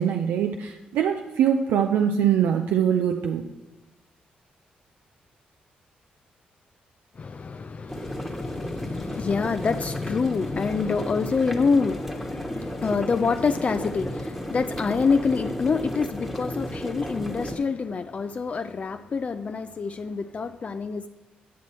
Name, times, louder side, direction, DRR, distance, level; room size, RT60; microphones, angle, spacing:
voice 1, 0.0-3.4, right 9 dB, 80° right, 4 dB, 0.4 m, -23 dB
voice 2, 7.2-21.1, left 5 dB, 40° left, 9 dB, 0.4 m, -26 dB
sound 1, 7.9-17.6, equal, 5° right, 1.2 m, -33 dB
9.3 x 6.0 x 4.3 m, 1.0 s
supercardioid pair, 60°, 3 cm